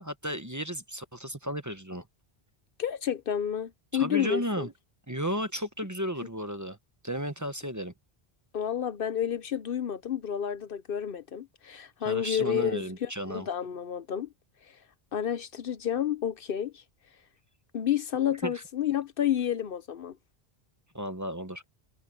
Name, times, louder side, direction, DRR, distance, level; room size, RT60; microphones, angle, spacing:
voice 1, 0.0-2.1 3.9-4.7 5.1-6.8 7.0-7.9 12.0-13.5 18.4-18.6 20.9-21.6, equal, 20° right, 1.0 m, -34 dB
voice 2, 2.8-4.7 8.5-14.3 15.1-16.8 17.7-20.2, left 9 dB, 65° left, 0.9 m, -30 dB
omnidirectional pair, 1.0 m